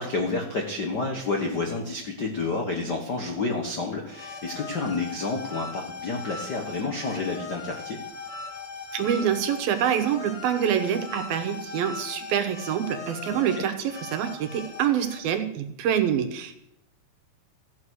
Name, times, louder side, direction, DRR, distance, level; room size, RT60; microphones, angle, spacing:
voice 1, 0.0-8.0 13.3-13.7, left 3 dB, 70° left, 2 dB, 1.0 m, -30 dB
sound 1, 4.1-15.2, left 4 dB, 50° left, 4.0 m, -39 dB
voice 2, 8.9-16.6, right 9 dB, 85° right, 7 dB, 3.1 m, -26 dB
14.5 x 8.5 x 6.3 m, 0.77 s
omnidirectional pair, 4.1 m